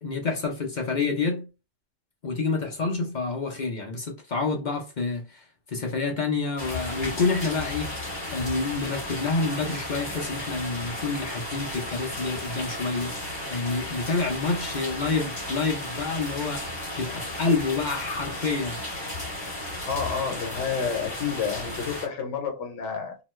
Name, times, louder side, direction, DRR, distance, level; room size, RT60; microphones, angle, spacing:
voice 1, 0.0-1.5 2.2-7.9 8.3-18.8, left 4 dB, 50° left, 0.6 m, -28 dB
sound 1, 6.6-22.1, left 1 dB, 25° left, 1.3 m, -34 dB
voice 2, 19.9-23.2, left 6 dB, 85° left, 1.1 m, -29 dB
2.9 x 2.1 x 3.0 m
omnidirectional pair, 1.2 m